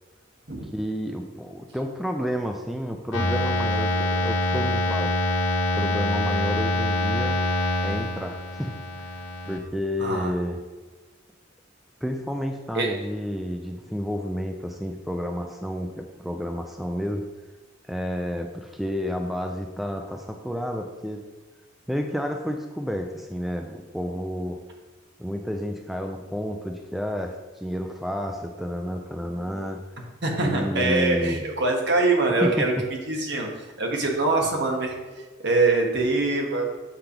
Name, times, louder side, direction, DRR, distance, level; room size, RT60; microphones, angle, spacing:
voice 1, 0.7-5.1 5.7-7.4 7.8-8.8 9.1-10.6 12.0-17.2 17.9-21.2 21.9-24.6 25.2-29.8 30.4-31.4 32.4-32.7, equal, ahead, 3 dB, 0.4 m, -30 dB
sound 1, 3.1-9.6, left 1 dB, 70° left, 1.5 m, -25 dB
voice 2, 10.0-10.3 12.7-12.9 30.2-32.7 33.1-35.0 35.4-36.7, right 3 dB, 60° right, 1 dB, 1.3 m, -23 dB
7.7 x 3.4 x 5.8 m, 1.3 s
head